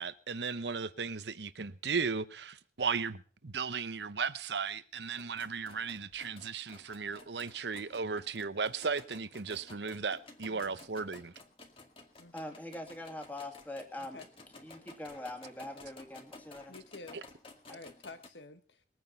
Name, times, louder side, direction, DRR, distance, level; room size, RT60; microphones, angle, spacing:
voice 1, 0.0-11.3, right 5 dB, 70° right, 0.9 m, -36 dB
sound 1, 5.0-18.3, left 2 dB, 30° left, 2.1 m, -54 dB
voice 2, 10.5-10.9 12.2-12.6 14.0-14.3 16.7-17.2 17.7-18.8, left 3 dB, 80° left, 1.6 m, -50 dB
voice 3, 12.3-14.2 14.6-16.7 17.7-17.8, left 1 dB, 10° left, 2.5 m, -43 dB
21.5 x 9.3 x 5.6 m
head